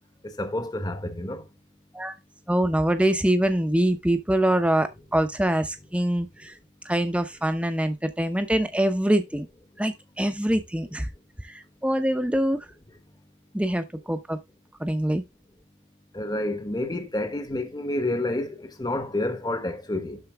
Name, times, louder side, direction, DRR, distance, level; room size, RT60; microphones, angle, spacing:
voice 1, 0.2-1.4 16.1-20.2, left 1 dB, 20° left, 1.1 m, -29 dB
voice 2, 2.5-6.5 6.9-9.5 9.8-11.1 11.5-12.6 13.5-14.4 14.8-15.2, right 1 dB, 5° right, 0.8 m, -24 dB
12.0 x 4.6 x 3.4 m
head